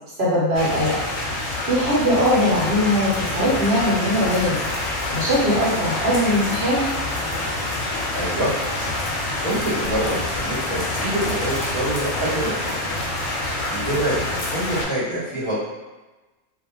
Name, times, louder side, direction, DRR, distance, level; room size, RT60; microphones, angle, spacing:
voice 1, 0.2-0.9 1.6-4.6 5.1-6.8, equal, 60° right, -7 dB, 0.9 m, -20 dB
sound 1, 0.5-14.8, left 2 dB, 65° left, 0.8 m, -26 dB
voice 2, 8.1-8.5 9.2-12.8 13.7-15.6, right 1 dB, 30° left, -12 dB, 0.7 m, -26 dB
2.2 x 2.1 x 2.9 m, 1.1 s
omnidirectional pair, 1.3 m